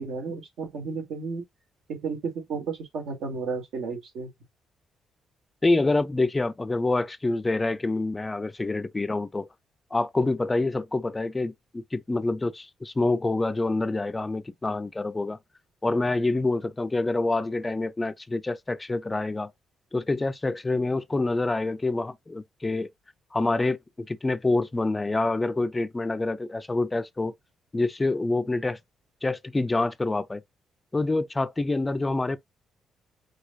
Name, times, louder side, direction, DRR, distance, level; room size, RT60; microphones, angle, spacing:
voice 1, 0.0-1.4 1.9-4.3, right 4 dB, 80° right, 2.3 m, -33 dB
voice 2, 5.6-9.5 9.9-15.4 15.8-19.5 19.9-22.9 23.3-23.8 24.1-27.3 27.7-28.8 29.2-30.4 30.9-32.4, left 2 dB, 20° left, 0.5 m, -26 dB
5.0 x 4.0 x 2.5 m
cardioid pair, 90°, 0 cm